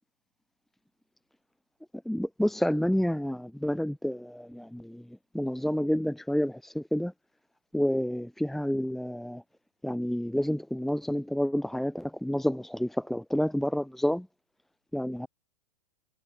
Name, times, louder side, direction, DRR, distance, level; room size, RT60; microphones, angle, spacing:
voice 1, 2.1-7.1 7.7-9.4 9.8-14.3 14.9-15.3, equal, ahead, 2.2 m, -29 dB
figure-of-eight pair, 105°, 21 cm